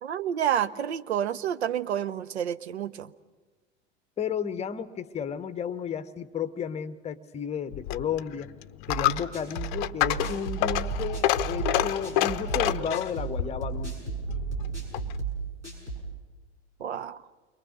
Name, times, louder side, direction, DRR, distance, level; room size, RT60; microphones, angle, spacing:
voice 1, 0.0-3.1 16.8-17.2, right 9 dB, 65° right, 15 dB, 0.8 m, -29 dB
voice 2, 4.2-8.5 8.9-14.2, left 7 dB, 20° left, 14 dB, 0.9 m, -33 dB
Coin (dropping), 7.7-15.2, left 14 dB, 45° left, 0.7 m, -29 dB
sound 1, 8.9-16.1, right 4 dB, 80° right, 6.9 m, -33 dB
29.0 x 22.5 x 6.6 m, 1.3 s
figure-of-eight pair, 85°, 35 cm